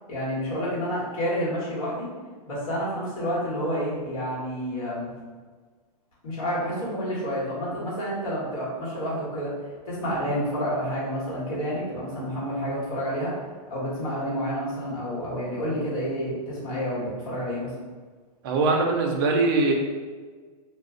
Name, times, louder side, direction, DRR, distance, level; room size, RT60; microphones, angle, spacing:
voice 1, 0.1-2.1 2.5-5.1 6.2-9.6 9.8-13.3 13.7-17.7, equal, 60° left, -6 dB, 1.4 m, -29 dB
voice 2, 18.4-19.7, right 3 dB, 35° right, 1 dB, 0.5 m, -22 dB
2.4 x 2.3 x 3.6 m, 1.5 s
hypercardioid pair, 165°, 20 cm